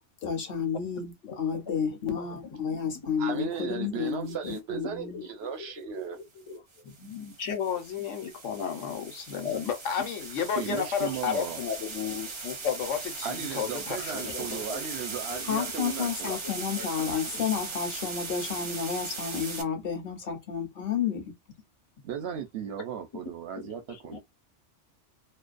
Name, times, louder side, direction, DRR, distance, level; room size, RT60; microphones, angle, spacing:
voice 1, 0.2-5.5 15.4-21.3, left 7 dB, 55° left, 0.8 m, -31 dB
voice 2, 3.2-6.2 10.6-11.6 13.2-16.3 22.0-24.2, right 8 dB, 65° right, 0.8 m, -36 dB
sound 1, 4.3-4.6 6.7-19.6, right 4 dB, 40° right, 0.4 m, -39 dB
voice 3, 5.6-6.6 10.0-10.1 10.7-11.2 14.0-14.9 15.3-15.9 16.4-17.5 23.6-24.2, left 3 dB, 35° left, 0.5 m, -43 dB
voice 4, 6.8-14.6, left 7 dB, 80° left, 1.1 m, -32 dB
2.5 x 2.2 x 2.4 m
omnidirectional pair, 1.2 m